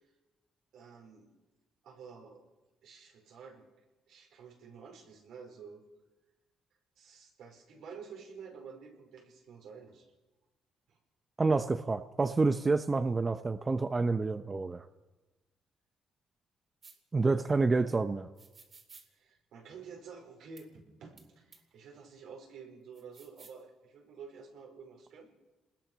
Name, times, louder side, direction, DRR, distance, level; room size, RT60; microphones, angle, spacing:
voice 1, 0.7-1.3 1.8-2.4 2.8-3.7 4.1-5.8 7.0-10.1 10.9-11.0 17.3-18.0 19.1-25.3, right 5 dB, 80° right, 2 dB, 5.0 m, -50 dB
voice 2, 11.4-14.9 17.1-18.3, right 3 dB, 25° right, 9 dB, 0.9 m, -28 dB
sound 1, 16.8-17.0 18.4-19.1 20.6-20.7 21.2-21.3 21.5-21.6 22.9-23.6, right 4 dB, 45° right, 3.7 m, -55 dB
26.5 x 20.5 x 6.3 m, 1.1 s
cardioid pair, 90°, 0 cm